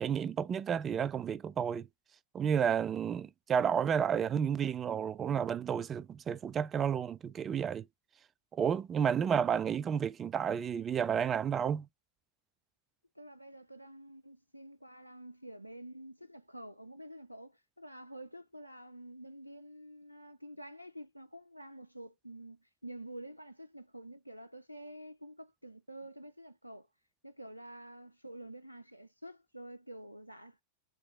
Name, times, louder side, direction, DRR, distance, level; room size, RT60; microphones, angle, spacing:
voice 1, 0.0-1.9 2.3-7.8 8.5-11.9, right 7 dB, 25° right, 0.3 m, -31 dB
voice 2, 13.2-26.9 27.2-30.6, right 1 dB, 90° right, 0.5 m, -49 dB
3.5 x 3.0 x 4.1 m
figure-of-eight pair, 90°, 0 cm